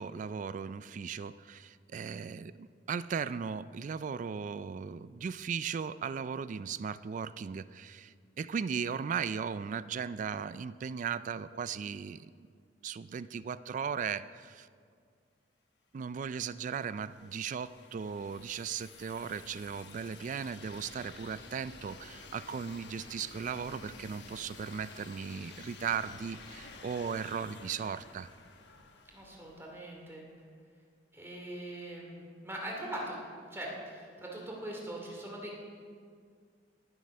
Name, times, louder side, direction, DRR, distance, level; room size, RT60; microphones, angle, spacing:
voice 1, 0.0-12.5 12.8-14.7 15.9-28.3, right 6 dB, 45° right, 16 dB, 0.3 m, -37 dB
sound 1, 16.2-29.9, left 4 dB, 65° left, 1.2 m, -51 dB
voice 2, 29.1-30.2 31.1-33.2 33.5-35.6, right 1 dB, 15° right, -2 dB, 2.5 m, -41 dB
19.0 x 7.5 x 5.5 m, 2.1 s
head